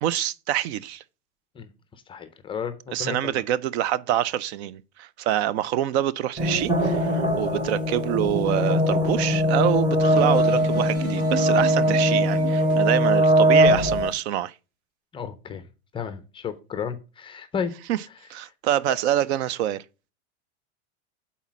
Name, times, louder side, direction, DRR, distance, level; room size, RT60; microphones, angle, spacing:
voice 1, 0.0-1.0 2.9-14.5 17.9-18.0 18.3-19.8, right 12 dB, 65° right, 0.5 m, -26 dB
voice 2, 2.1-3.4 7.4-7.5 15.1-15.6 15.9-17.7 18.9-19.0, left 7 dB, 15° left, 0.4 m, -33 dB
sound 1, 6.4-14.1, equal, 10° right, 1.2 m, -21 dB
sound 2, 10.1-13.0, right 4 dB, 40° right, 2.0 m, -34 dB
5.7 x 4.1 x 6.0 m
supercardioid pair, 140°, 35 cm